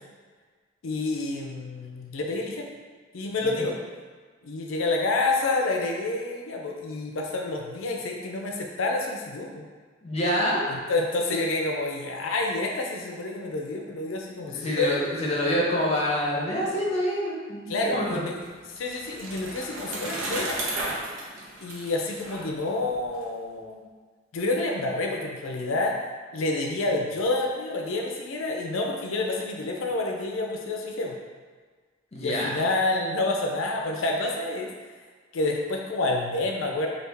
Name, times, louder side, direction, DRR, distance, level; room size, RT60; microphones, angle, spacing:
voice 1, 0.8-2.7 3.1-3.8 4.4-9.6 10.7-15.0 17.7-18.4 18.8-20.6 21.6-23.9 24.3-26.0 26.3-31.2 32.2-34.7 35.3-36.9, left 2 dB, 90° left, 1 dB, 0.5 m, -28 dB
voice 2, 10.0-10.6 14.5-18.2 32.1-32.6, equal, 35° left, -4 dB, 0.7 m, -27 dB
Bicycle, 18.2-23.2, right 1 dB, 85° right, 0.7 m, -34 dB
3.3 x 2.4 x 3.3 m, 1.5 s
head